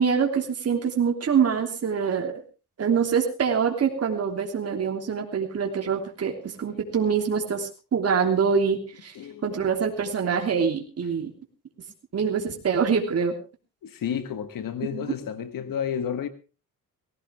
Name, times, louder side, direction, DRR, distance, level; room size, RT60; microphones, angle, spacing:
voice 1, 0.0-2.3 2.8-9.1 9.4-11.3 12.1-13.4 14.9-15.1, right 6 dB, 45° right, 3.2 m, -25 dB
voice 2, 9.2-9.5 13.8-16.3, left 8 dB, 80° left, 1.7 m, -31 dB
19.0 x 16.0 x 3.6 m
cardioid pair, 115°, 33 cm